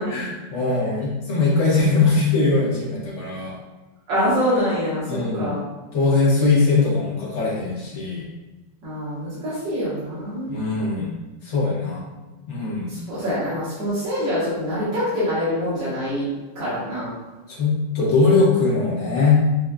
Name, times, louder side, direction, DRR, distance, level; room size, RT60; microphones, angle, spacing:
voice 1, 0.1-3.6 5.1-5.5 5.9-8.2 10.5-11.1 11.4-12.0 12.5-12.9 17.5-19.4, left 3 dB, 45° left, -6 dB, 1.3 m, -21 dB
voice 2, 4.1-5.6 8.8-10.6 12.9-16.3 16.6-17.1, equal, 75° right, -12 dB, 2.3 m, -25 dB
6.5 x 2.6 x 2.4 m, 1.2 s
omnidirectional pair, 2.0 m